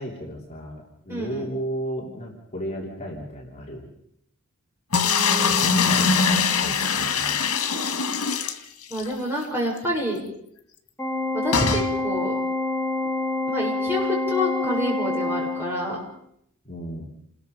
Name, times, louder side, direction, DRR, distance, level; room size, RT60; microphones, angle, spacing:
voice 1, 0.0-3.9 5.6-7.4 16.6-17.1, equal, 30° left, -1 dB, 3.3 m, -34 dB
voice 2, 1.1-1.5 5.0-5.8 8.9-10.2 11.3-12.4 13.5-16.0, equal, 10° right, -3 dB, 7.3 m, -28 dB
sound 1, 4.9-9.1 9.4-9.5 9.8-9.9 11.5-11.9, left 5 dB, 90° left, 2.2 m, -22 dB
Organ, 11.0-16.0, left 2 dB, 10° left, 1.8 m, -27 dB
28.5 x 21.0 x 5.3 m, 0.73 s
head